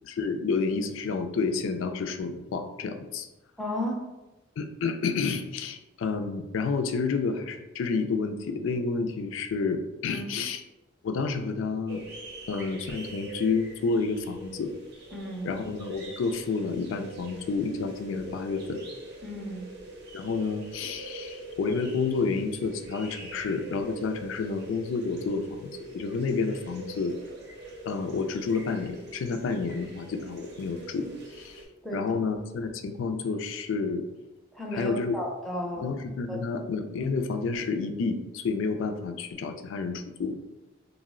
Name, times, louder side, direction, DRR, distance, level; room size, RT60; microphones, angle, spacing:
voice 1, 0.0-3.3 4.6-10.6 11.0-12.0 12.5-14.7 15.4-18.8 20.1-27.1 27.8-31.6 31.9-34.0 34.7-35.2 35.8-40.4, left 4 dB, 70° left, 7 dB, 0.3 m, -30 dB
voice 2, 3.6-4.0 10.1-10.2 15.1-15.5 19.2-19.7 31.8-32.0 34.5-35.9 36.3-36.4, equal, ahead, -2 dB, 0.4 m, -33 dB
sound 1, 11.9-31.7, right 2 dB, 55° right, 0.6 m, -44 dB
2.6 x 2.0 x 3.7 m, 1.0 s
head